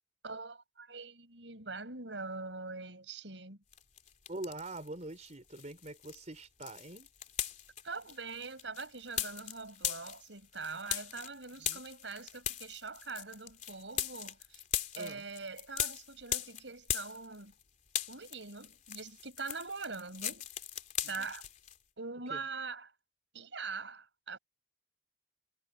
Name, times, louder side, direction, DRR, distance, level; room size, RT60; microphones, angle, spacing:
voice 1, 0.2-3.6 7.8-14.6 15.0-17.5 18.1-20.5 21.1-21.4 22.0-22.9 23.3-24.4, right 4 dB, 90° right, 5.9 m, -43 dB
sound 1, 3.7-4.9 5.2-17.6 17.9-21.8, left 10 dB, 45° left, 3.2 m, -39 dB
voice 2, 4.3-7.1 11.6-11.9 14.9-15.3 21.0-21.3 22.3-22.4, right 2 dB, 40° right, 3.8 m, -44 dB
head